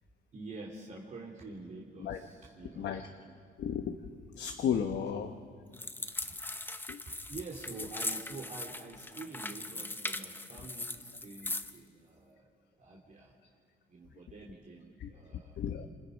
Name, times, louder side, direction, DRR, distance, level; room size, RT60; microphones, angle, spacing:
voice 1, 0.3-2.9 3.3-3.4 6.3-6.4 7.0-12.5 12.8-13.6 13.9-15.6, right 3 dB, 45° right, -3 dB, 3.3 m, -47 dB
voice 2, 2.8-3.1 3.6-5.3 6.9-7.0 15.0-15.1 15.6-15.9, left 8 dB, 75° left, 5 dB, 1.2 m, -34 dB
sound 1, 5.7-11.8, left 2 dB, 10° left, 0.8 m, -40 dB
29.0 x 27.5 x 5.3 m, 2.1 s
cardioid pair, 125°, 18 cm